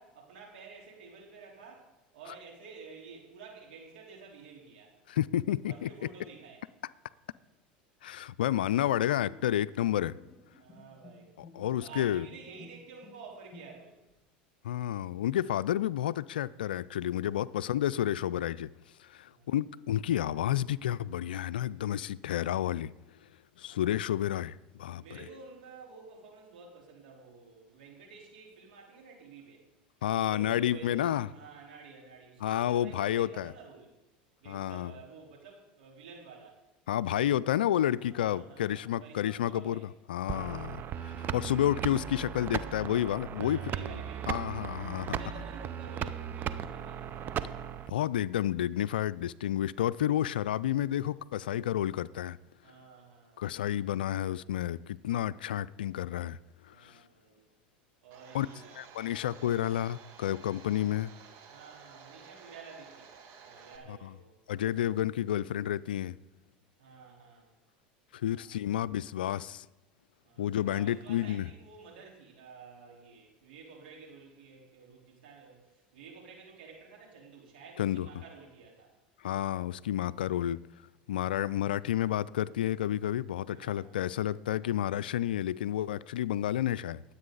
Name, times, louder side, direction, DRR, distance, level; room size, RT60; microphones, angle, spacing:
voice 1, 0.0-1.9 2.1-4.9 5.7-6.6 10.6-11.3 11.8-14.0 17.3-17.5 19.3-19.5 23.6-24.1 25.0-29.6 30.2-33.9 34.4-36.6 37.8-39.9 43.3-44.6 45.0-47.1 52.6-53.7 56.6-57.5 58.0-58.7 61.5-63.1 63.3-64.3 66.8-67.5 68.2-69.0 70.2-78.9 83.5-84.2 84.6-85.1, right 5 dB, 75° right, 3.9 m, -51 dB
voice 2, 5.1-5.9 8.0-10.2 11.5-12.3 14.6-18.7 19.0-22.9 23.6-25.0 30.0-31.3 32.4-33.5 34.5-34.9 36.9-39.8 40.1-43.6 44.3-45.2 47.9-52.4 53.4-56.4 56.8-56.9 58.3-58.5 58.7-61.1 64.0-64.1 64.5-66.2 68.1-69.7 70.4-71.5 77.8-78.1 79.2-80.6 81.1-87.0, left 11 dB, 85° left, 0.4 m, -30 dB
Bowed string instrument, 9.2-14.1, left 3 dB, 15° left, 4.9 m, -55 dB
sound 1, 40.3-47.9, right 9 dB, 40° right, 0.7 m, -37 dB
Domestic sounds home sounds, 58.1-63.8, right 6 dB, 55° right, 2.0 m, -53 dB
22.5 x 8.3 x 4.0 m
hypercardioid pair, 85°, 5 cm